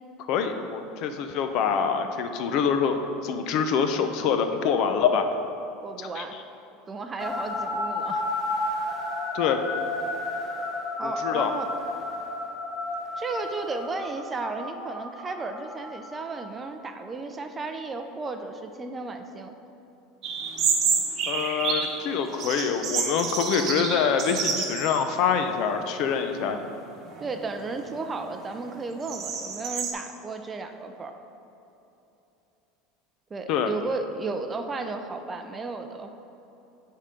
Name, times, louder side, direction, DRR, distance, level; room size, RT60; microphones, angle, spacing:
voice 1, 0.3-5.3 6.0-6.2 9.3-9.6 11.0-11.5 21.3-26.6 33.5-33.7, left 6 dB, 50° left, 7 dB, 0.5 m, -25 dB
voice 2, 5.8-6.4 6.9-8.2 11.0-11.7 13.2-19.5 27.2-31.1 33.3-36.1, right 3 dB, 20° right, 6 dB, 0.4 m, -34 dB
sound 1, 7.2-16.7, left 2 dB, 30° left, 1.1 m, -32 dB
sound 2, 20.2-22.0 22.3-25.0 25.4-25.5 26.2-26.6 27.1-29.9, right 5 dB, 40° right, 1.0 m, -29 dB
9.9 x 3.7 x 5.1 m, 3.0 s
supercardioid pair, 145°, 0 cm